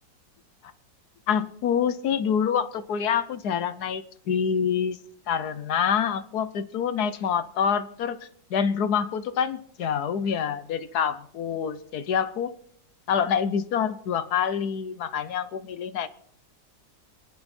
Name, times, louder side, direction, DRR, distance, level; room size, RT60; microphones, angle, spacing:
voice 1, 1.3-5.0 5.3-8.2 8.5-12.5 13.1-16.1, left 7 dB, 65° left, 13 dB, 1.3 m, -26 dB
28.0 x 11.0 x 4.3 m, 0.66 s
omnidirectional pair, 1.9 m